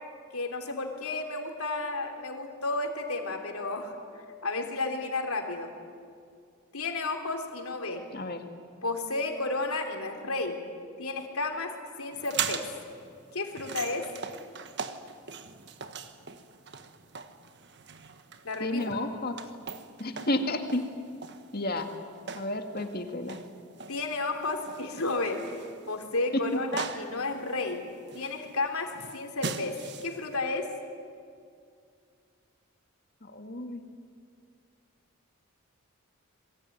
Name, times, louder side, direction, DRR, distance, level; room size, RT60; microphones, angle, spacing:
voice 1, 0.3-3.9 4.4-5.7 6.7-8.0 8.8-10.6 11.0-11.7 12.0-12.7 13.3-14.1 18.4-18.8 23.9-25.4 25.9-27.8 28.1-29.7 30.0-30.7, left 3 dB, 80° left, 4 dB, 3.4 m, -32 dB
sound 1, 12.1-30.4, right 6 dB, 50° right, 1.4 m, -40 dB
voice 2, 18.6-19.4 20.0-20.8 21.5-21.9 22.3-23.4 26.3-26.6 33.2-33.8, left 1 dB, 45° left, 6 dB, 2.1 m, -31 dB
27.0 x 22.0 x 9.5 m, 2.3 s
head